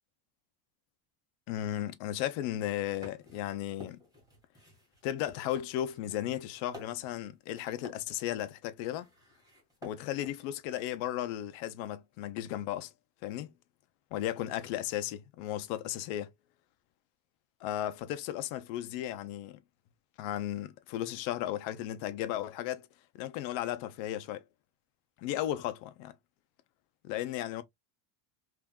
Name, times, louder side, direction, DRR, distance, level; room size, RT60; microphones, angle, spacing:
voice 1, 1.5-4.0 5.0-9.1 9.8-12.9 13.2-13.5 14.1-16.3 17.6-19.6 20.2-22.9 23.1-24.4 25.2-26.1 27.0-27.6, left 12 dB, 70° left, 0.7 m, -35 dB
sound 1, 2.6-11.2 11.8-12.4, left 2 dB, 5° right, 1.8 m, -53 dB
3.5 x 2.6 x 2.2 m
cardioid pair, 160°, 49 cm